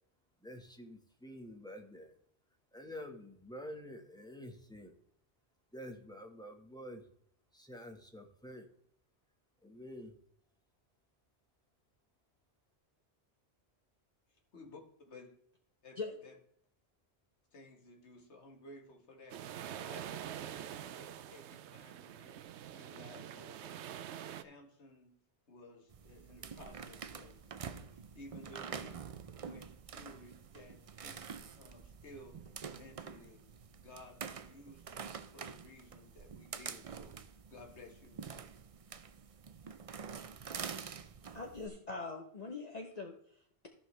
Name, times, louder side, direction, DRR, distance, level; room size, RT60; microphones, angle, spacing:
voice 1, 0.4-2.2 2.7-4.9 5.7-7.1 7.5-8.7 9.6-10.1, equal, 5° left, 3 dB, 1.2 m, -48 dB
voice 2, 14.3-15.3 15.8-16.3 17.5-19.4 19.8-24.0 24.3-25.2 25.5-29.0 29.3-33.4 33.8-38.2, left 2 dB, 85° left, 2 dB, 1.8 m, -56 dB
sound 1, 19.3-24.4, right 10 dB, 85° right, 0.9 m, -45 dB
sound 2, 25.9-41.7, right 6 dB, 45° right, 0.5 m, -47 dB
voice 3, 41.3-43.7, left 3 dB, 40° left, 3 dB, 0.9 m, -43 dB
14.5 x 5.5 x 3.2 m, 0.67 s
omnidirectional pair, 1.1 m